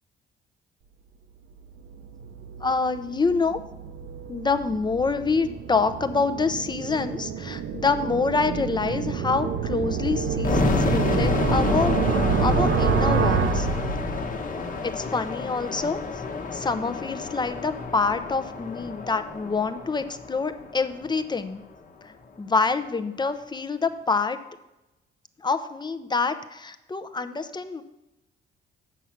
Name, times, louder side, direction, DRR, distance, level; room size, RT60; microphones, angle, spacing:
sound 1, 1.6-14.5, right 6 dB, 65° right, 0.8 m, -28 dB
voice 1, 2.6-3.6 4.3-12.1 12.4-13.7 14.8-16.2 16.5-21.6 22.4-24.4 25.4-27.8, left 4 dB, 20° left, 10 dB, 0.7 m, -26 dB
sound 2, 10.4-21.3, left 4 dB, 40° left, 1.1 m, -29 dB
8.0 x 6.1 x 5.8 m, 0.96 s
cardioid pair, 90°, 20 cm